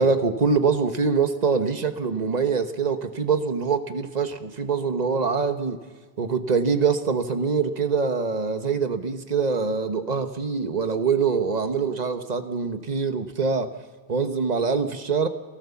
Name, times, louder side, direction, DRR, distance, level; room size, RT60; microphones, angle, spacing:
voice 1, 0.0-5.8 6.2-13.7 14.1-15.3, right 5 dB, 40° right, 9 dB, 1.2 m, -24 dB
28.0 x 14.0 x 7.1 m, 1.4 s
omnidirectional pair, 1.1 m